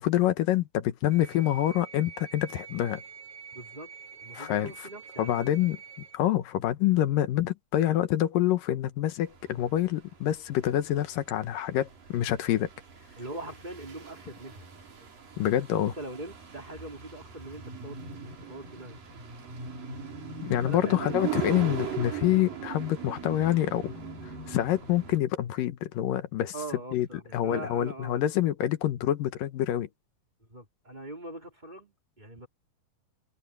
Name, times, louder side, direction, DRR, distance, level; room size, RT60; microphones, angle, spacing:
voice 1, 0.0-3.0 4.3-4.7 5.2-5.8 6.1-12.7 15.4-15.9 20.4-23.9 24.5-26.5 26.9-27.1 27.3-29.9, left 12 dB, 85° left, 2.8 m, -26 dB
sound 1, 1.1-6.2, right 6 dB, 45° right, 6.9 m, -47 dB
voice 2, 3.5-3.9 4.2-5.5 13.2-14.7 16.0-18.0 18.4-19.0 20.6-21.5 26.5-28.2 30.5-32.5, right 2 dB, 10° right, 4.5 m, -42 dB
Berlin Street short car motor atmo, 9.3-25.2, right 6 dB, 85° right, 6.7 m, -40 dB
omnidirectional pair, 3.8 m